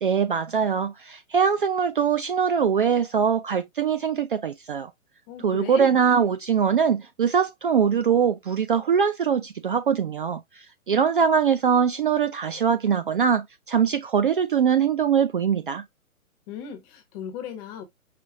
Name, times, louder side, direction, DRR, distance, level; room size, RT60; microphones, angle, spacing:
voice 1, 0.0-4.9 5.4-15.8, right 7 dB, 40° right, 0.4 m, -22 dB
voice 2, 5.3-6.0 16.5-17.8, left 8 dB, 15° left, 0.7 m, -36 dB
5.0 x 3.9 x 2.6 m
figure-of-eight pair, 135°, 43 cm